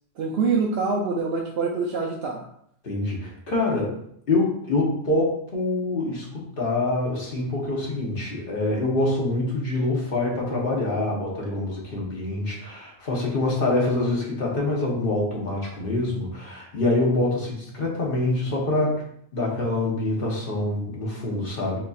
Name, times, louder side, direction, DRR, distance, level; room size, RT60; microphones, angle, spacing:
voice 1, 0.2-2.4, right 4 dB, 65° right, -1 dB, 0.7 m, -25 dB
voice 2, 2.8-3.9 4.3-19.0 19.3-21.8, left 2 dB, 45° left, -3 dB, 1.2 m, -25 dB
5.8 x 2.7 x 2.4 m, 0.68 s
omnidirectional pair, 1.3 m